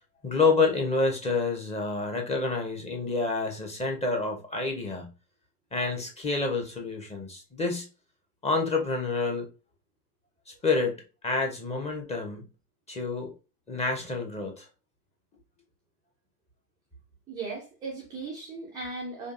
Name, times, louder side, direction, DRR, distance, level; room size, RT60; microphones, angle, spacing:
voice 1, 0.2-5.1 5.7-7.9 8.4-9.5 10.6-12.4 12.9-13.3 13.7-14.7, left 3 dB, 15° left, 1.0 m, -28 dB
voice 2, 17.3-19.3, right 3 dB, 10° right, 0.3 m, -37 dB
5.0 x 2.5 x 2.5 m
figure-of-eight pair, 90°, 47 cm